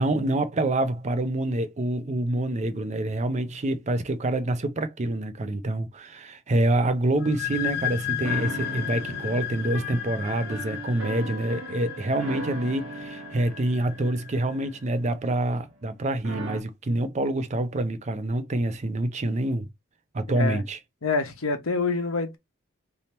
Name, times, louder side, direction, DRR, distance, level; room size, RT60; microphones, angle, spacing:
voice 1, 0.0-19.7 20.1-20.8, right 1 dB, 35° right, 0.5 m, -26 dB
sound 1, 7.2-14.6, left 11 dB, 50° left, 0.4 m, -34 dB
sound 2, 8.2-15.9 16.2-16.6, right 2 dB, 65° right, 1.2 m, -39 dB
voice 2, 21.0-22.4, left 4 dB, 80° left, 1.0 m, -26 dB
3.4 x 2.8 x 4.1 m
head